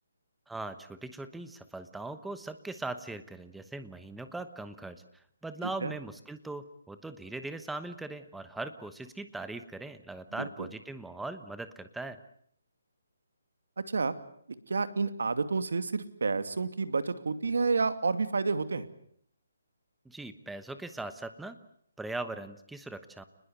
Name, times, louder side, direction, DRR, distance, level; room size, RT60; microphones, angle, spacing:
voice 1, 0.5-12.2 20.0-21.6 22.0-23.2, right 2 dB, 5° right, 10 dB, 1.1 m, -40 dB
voice 2, 5.6-5.9 10.4-10.7 13.8-14.1 14.7-18.9, right 4 dB, 75° right, 11 dB, 2.6 m, -30 dB
29.5 x 20.5 x 8.1 m, 0.67 s
hypercardioid pair, 170°, 0 cm